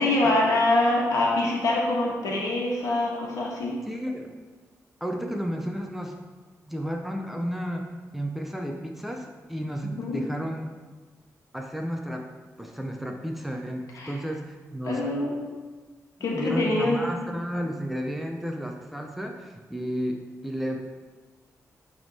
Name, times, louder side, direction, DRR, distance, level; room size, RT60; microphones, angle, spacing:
voice 1, 0.0-3.7 9.9-10.2 13.9-14.1 14.9-15.4 16.2-17.0, left 2 dB, 90° left, -3 dB, 1.4 m, -24 dB
voice 2, 3.9-4.3 5.0-6.2 6.7-10.7 11.5-12.3 12.6-15.0 16.3-21.0, equal, 5° right, 2 dB, 0.5 m, -32 dB
9.0 x 3.5 x 4.0 m, 1.3 s
wide cardioid pair, 140°, 6 cm